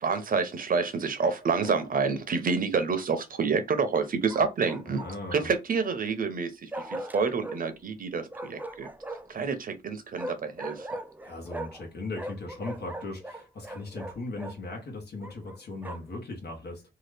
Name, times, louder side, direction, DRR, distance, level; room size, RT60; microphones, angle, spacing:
voice 1, 0.0-5.0 5.3-8.9 9.3-10.9, right 5 dB, 55° right, 0.6 m, -28 dB
Bark, 1.2-1.8 4.3-5.4 6.7-7.6 8.3-9.4 10.1-11.9 12.1-14.6 15.2-16.2, right 1 dB, 10° right, 0.3 m, -40 dB
voice 2, 4.9-5.5 11.2-16.8, left 2 dB, 90° left, 1.1 m, -38 dB
2.8 x 2.3 x 3.3 m
wide cardioid pair, 105°, 17 cm